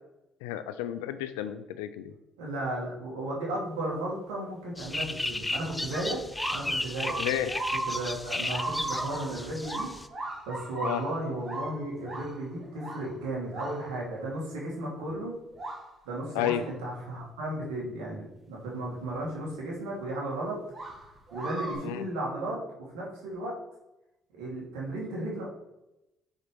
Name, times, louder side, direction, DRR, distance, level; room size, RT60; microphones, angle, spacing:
voice 1, 0.4-2.1 7.2-7.6 10.8-11.0 16.3-16.6 21.8-22.0, left 11 dB, 85° left, 12 dB, 0.4 m, -31 dB
voice 2, 2.4-6.2 6.5-7.2 7.7-9.9 10.5-15.3 16.0-20.6 21.3-22.6 22.9-23.5 24.3-25.5, right 1 dB, 85° right, -4 dB, 2.7 m, -34 dB
sound 1, 4.8-10.1, left 2 dB, 15° left, 0.5 m, -34 dB
sound 2, 6.4-14.1 14.7-14.8 15.5-15.9 16.4-16.7 19.1-19.2 20.7-21.7, right 2 dB, 40° right, 2.3 m, -37 dB
6.4 x 4.6 x 5.2 m, 0.92 s
supercardioid pair, 60°, 0 cm